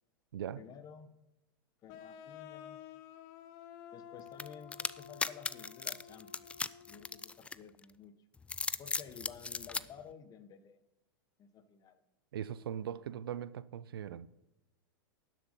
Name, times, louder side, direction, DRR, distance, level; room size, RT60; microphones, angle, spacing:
voice 1, 0.5-1.1 1.8-2.8 3.9-8.1 8.8-10.8 11.4-12.0, left 7 dB, 30° left, 1.2 m, -53 dB
sound 1, 1.9-7.4, left 9 dB, 50° left, 1.1 m, -52 dB
sound 2, 4.4-7.8 8.4-9.8, left 4 dB, 10° left, 0.4 m, -37 dB
voice 2, 12.3-14.3, right 9 dB, 75° right, 0.6 m, -40 dB
12.0 x 7.7 x 5.5 m
hypercardioid pair, 105°, 12 cm